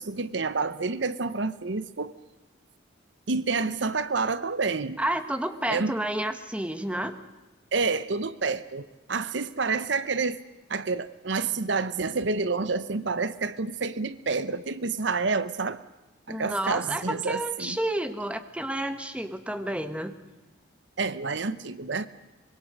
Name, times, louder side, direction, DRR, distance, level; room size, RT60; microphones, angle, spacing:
voice 1, 0.0-2.1 3.3-5.0 5.7-5.9 7.7-10.4 10.7-15.8 16.3-17.8 21.0-22.1, right 4 dB, 65° right, 0.8 m, -28 dB
voice 2, 5.0-7.1 16.3-20.1, right 1 dB, 5° right, 1.2 m, -30 dB
25.0 x 22.0 x 6.6 m
head